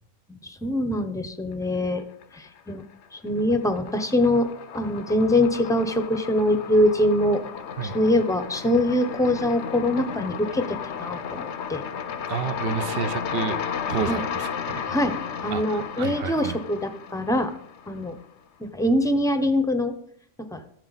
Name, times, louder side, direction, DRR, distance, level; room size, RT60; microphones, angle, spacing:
voice 1, 0.4-2.0 2.4-2.8 3.1-4.5 4.7-7.4 7.8-11.8 14.1-14.2 14.9-15.2 15.4-17.5 17.9-18.2 18.6-19.9 20.5-20.6, left 1 dB, 5° left, 8 dB, 0.6 m, -23 dB
sound 1, 2.0-2.7 3.0-18.2, left 7 dB, 70° left, 1.0 m, -34 dB
voice 2, 12.3-13.6 13.9-14.8 15.5-16.6, right 7 dB, 60° right, 13 dB, 0.7 m, -30 dB
13.5 x 7.6 x 4.0 m, 0.67 s
omnidirectional pair, 1.3 m